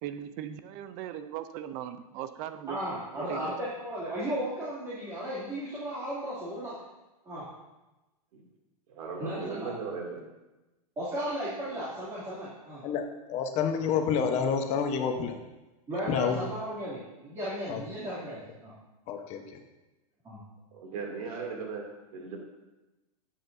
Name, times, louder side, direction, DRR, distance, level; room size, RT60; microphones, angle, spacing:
voice 1, 0.0-2.8 3.1-3.6, right 11 dB, 40° right, 12 dB, 0.6 m, -39 dB
voice 2, 2.7-6.7 7.2-7.5 9.2-9.7 11.0-12.8 15.9-18.7 20.2-20.4, right 1 dB, 15° right, -9 dB, 2.7 m, -35 dB
voice 3, 9.0-10.2 20.7-22.4, right 4 dB, 65° right, 0 dB, 2.6 m, -37 dB
voice 4, 12.8-15.3 16.1-16.5 17.7-17.8 19.1-19.6, left 6 dB, 35° left, 5 dB, 1.0 m, -29 dB
12.0 x 7.8 x 2.7 m, 1.1 s
hypercardioid pair, 135°, 20 cm